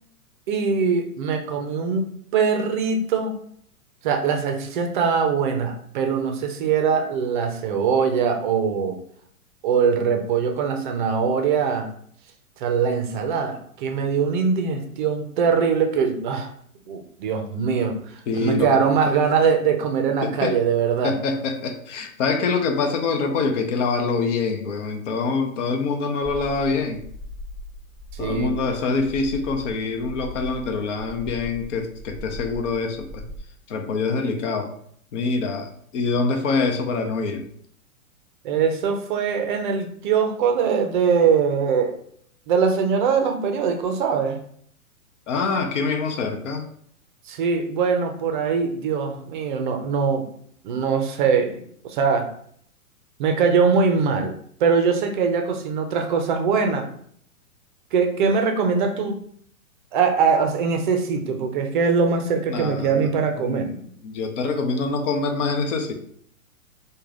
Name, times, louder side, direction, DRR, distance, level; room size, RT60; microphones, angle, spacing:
voice 1, 0.5-3.4 4.0-9.0 9.6-11.9 12.6-16.5 16.9-18.0 18.3-21.1 28.1-28.5 38.4-41.9 42.5-44.4 47.3-50.3 50.6-52.3 53.2-56.9 57.9-59.2 59.9-63.7, right 6 dB, 35° right, 5 dB, 0.5 m, -22 dB
voice 2, 18.3-18.8 20.2-20.6 21.0-27.0 28.2-33.2 33.7-34.7 35.1-37.4 45.3-46.6 62.5-65.9, left 4 dB, 55° left, 4 dB, 0.8 m, -25 dB
sound 1, 26.2-33.4, left 1 dB, 10° right, 1.2 m, -38 dB
3.2 x 2.2 x 3.7 m, 0.64 s
hypercardioid pair, 135°, 43 cm